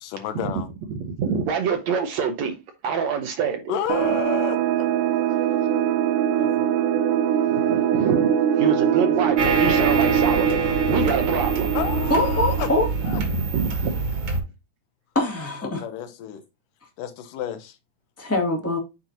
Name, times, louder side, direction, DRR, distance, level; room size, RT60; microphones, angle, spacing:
voice 1, 0.0-0.7 3.7-4.9 6.3-6.7 11.7-12.7 13.1-13.2 15.6-16.4 17.0-17.8, left 9 dB, 85° left, 2.4 m, -31 dB
voice 2, 0.9-2.6 2.8-3.6 7.5-11.8 13.1-13.2 13.5-13.7, right 6 dB, 70° right, 1.8 m, -26 dB
sound 1, 3.9-13.2, right 9 dB, 85° right, 2.6 m, -22 dB
sound 2, 9.4-14.4, right 3 dB, 45° right, 1.9 m, -26 dB
voice 3, 12.1-12.8 15.1-15.8 18.2-18.8, left 2 dB, 10° left, 0.8 m, -23 dB
9.2 x 4.4 x 2.8 m
omnidirectional pair, 3.8 m